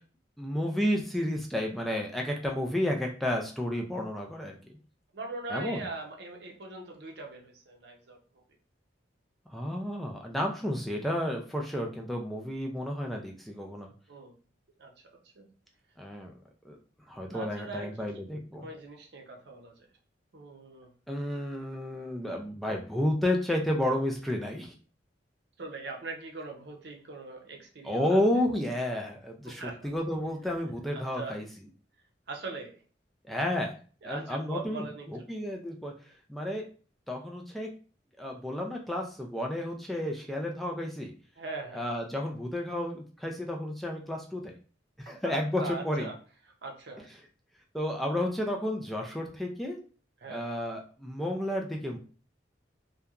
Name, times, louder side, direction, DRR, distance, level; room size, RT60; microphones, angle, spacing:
voice 1, 0.4-4.6 5.5-5.8 9.5-13.9 16.0-16.3 16.6-16.8 17.1-18.7 21.1-24.7 27.8-31.5 33.2-36.6 37.1-37.7 38.2-41.1 41.7-44.6 45.0-46.1 47.7-49.8 50.3-52.0, left 1 dB, ahead, 0 dB, 0.3 m, -31 dB
voice 2, 5.1-8.4 14.1-14.3 14.8-14.9 15.2-15.5 17.3-18.1 18.6-19.9 20.3-20.9 25.6-28.2 29.4-29.9 30.9-31.4 32.3-32.8 34.0-35.3 41.4-41.9 45.2-46.2 46.6-47.1 50.2-50.5, right 3 dB, 65° right, 2 dB, 0.6 m, -41 dB
2.8 x 2.2 x 2.3 m, 0.39 s
head